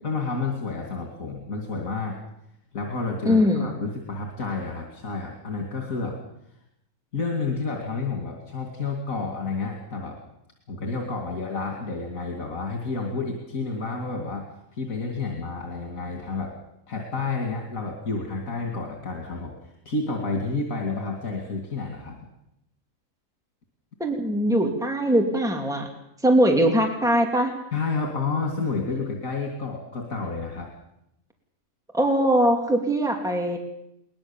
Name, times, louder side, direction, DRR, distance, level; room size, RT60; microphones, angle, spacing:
voice 1, 0.0-2.2 2.7-6.2 7.1-10.2 10.7-14.5 14.7-16.6 16.9-22.2 27.7-30.7, left 3 dB, 85° left, 1 dB, 2.9 m, -30 dB
voice 2, 3.2-3.7 24.0-25.9 26.2-27.5 31.9-33.6, equal, ahead, 2 dB, 2.7 m, -21 dB
21.5 x 20.5 x 7.2 m, 0.80 s
omnidirectional pair, 1.4 m